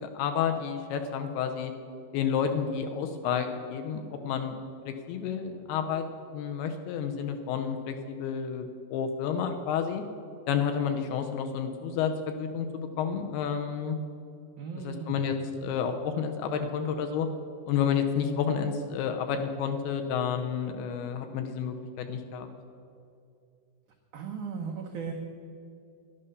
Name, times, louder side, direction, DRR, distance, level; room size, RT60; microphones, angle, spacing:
voice 1, 0.0-1.7 2.1-4.6 4.9-6.0 6.3-10.0 10.5-14.0 14.8-15.4 15.6-17.3 17.7-22.5, left 7 dB, 80° left, 5 dB, 2.5 m, -30 dB
voice 2, 14.6-15.2 24.1-25.1, right 6 dB, 85° right, 0 dB, 1.7 m, -36 dB
11.0 x 11.0 x 6.6 m, 2.5 s
omnidirectional pair, 4.9 m